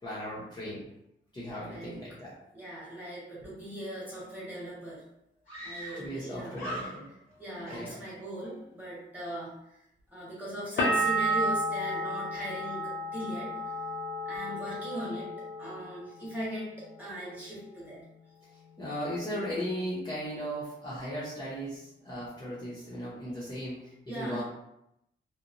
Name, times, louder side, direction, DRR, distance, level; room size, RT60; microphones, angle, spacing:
voice 1, 0.0-0.9 1.3-2.3 5.9-7.4 7.7-7.9 18.8-24.4, equal, 20° left, -9 dB, 0.6 m, -37 dB
voice 2, 2.5-5.0 5.6-6.9 7.4-9.8 10.1-13.5 14.2-15.3 15.6-18.0 24.1-24.4, equal, 10° right, -8 dB, 1.0 m, -39 dB
Screaming, 4.4-4.5 4.7-4.8 5.5-6.3 6.5-7.3 7.6-8.6, right 1 dB, 85° left, 1.3 m, -42 dB
sound 1, 10.8-16.4 16.7-17.5, right 1 dB, 65° left, 0.5 m, -32 dB
2.8 x 2.1 x 2.5 m, 0.82 s
wide cardioid pair, 170°, 20 cm